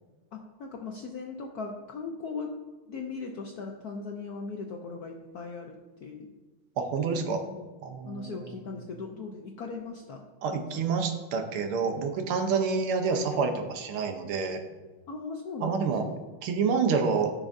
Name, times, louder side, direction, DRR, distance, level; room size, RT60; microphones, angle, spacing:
voice 1, 0.3-2.5 2.9-6.3 7.4-7.6 8.0-10.2 10.5-11.0 15.1-16.2, left 4 dB, 70° left, 2 dB, 0.9 m, -39 dB
voice 2, 6.8-7.4 7.8-8.4 10.4-14.6 15.6-16.0 16.4-17.3, right 5 dB, 80° right, 6 dB, 1.7 m, -28 dB
14.0 x 6.1 x 2.6 m, 1.2 s
omnidirectional pair, 2.3 m